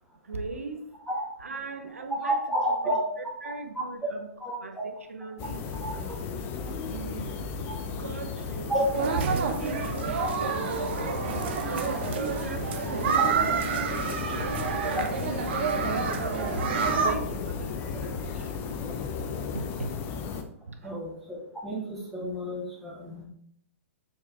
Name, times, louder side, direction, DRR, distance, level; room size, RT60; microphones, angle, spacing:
voice 1, 0.2-0.9 1.4-2.4 2.8-4.3 4.6-6.4 6.8-7.4 8.0-9.1 9.5-10.7 11.2-13.5 13.8-18.7 19.5-19.9 20.6-20.9, right 3 dB, 70° right, 6 dB, 1.2 m, -41 dB
voice 2, 2.2-3.0 3.4-3.8 4.4-4.8 5.8-5.9 7.7-7.8 8.7-9.2 10.2-10.3 11.4-11.5 13.2-13.3 14.9-15.0 18.8-18.9 20.8-23.2, equal, ahead, -6 dB, 1.9 m, -30 dB
sound 1, 5.4-20.4, left 5 dB, 30° left, 0.8 m, -35 dB
sound 2, 8.9-17.1, right 6 dB, 50° right, 0.9 m, -28 dB
7.2 x 6.3 x 3.4 m, 0.66 s
figure-of-eight pair, 115°, 8 cm